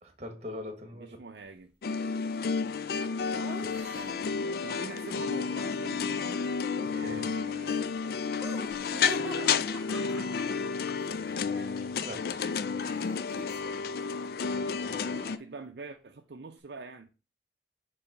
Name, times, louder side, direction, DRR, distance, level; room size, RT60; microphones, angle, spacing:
voice 1, 0.0-1.2 6.8-7.3 12.0-12.5, left 1 dB, 40° right, 1.3 m, -42 dB
voice 2, 0.9-1.7 3.2-4.3 4.6-6.4 6.9-8.0 8.9-10.4 14.4-17.1, right 4 dB, 70° right, 0.5 m, -46 dB
sound 1, 1.8-15.4, left 5 dB, 55° left, 0.3 m, -31 dB
Laughter, 3.3-4.4 5.4-6.4 8.2-12.1 12.4-15.5, right 1 dB, 5° right, 1.5 m, -46 dB
6.9 x 3.0 x 5.8 m
head